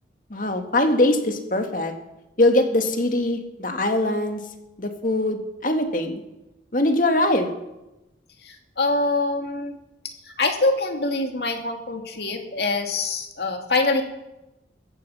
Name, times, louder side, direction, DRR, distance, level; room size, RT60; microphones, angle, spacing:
voice 1, 0.3-1.9 2.4-4.4 4.8-6.2 6.7-7.5, left 1 dB, 45° left, 5 dB, 2.1 m, -22 dB
voice 2, 8.5-9.7 10.4-14.0, left 2 dB, 60° left, 4 dB, 2.4 m, -24 dB
16.0 x 15.0 x 5.7 m, 0.96 s
head